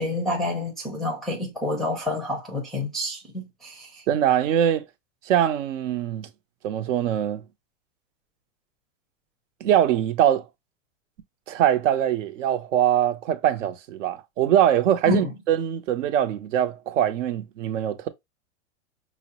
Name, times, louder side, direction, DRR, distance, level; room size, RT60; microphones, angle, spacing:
voice 1, 0.0-4.0 15.0-15.3, left 1 dB, ahead, 0.5 m, -28 dB
voice 2, 4.1-4.8 5.3-6.3 6.6-7.4 9.6-10.4 11.5-18.1, right 10 dB, 70° right, 0.8 m, -22 dB
5.6 x 2.1 x 2.8 m
supercardioid pair, 150°, 38 cm